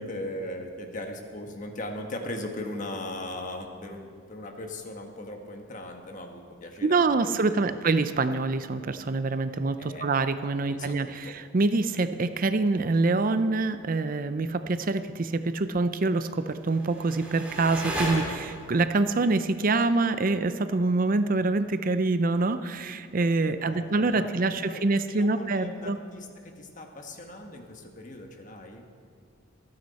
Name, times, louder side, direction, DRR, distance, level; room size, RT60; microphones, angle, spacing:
voice 1, 0.0-7.7 9.8-10.1 10.6-11.4 23.5-28.9, left 1 dB, 40° left, 3 dB, 1.4 m, -39 dB
voice 2, 6.8-26.0, right 3 dB, 45° right, 11 dB, 0.5 m, -25 dB
sound 1, 16.5-18.8, right 1 dB, 10° right, 3.6 m, -34 dB
27.0 x 9.5 x 4.2 m, 2.1 s
head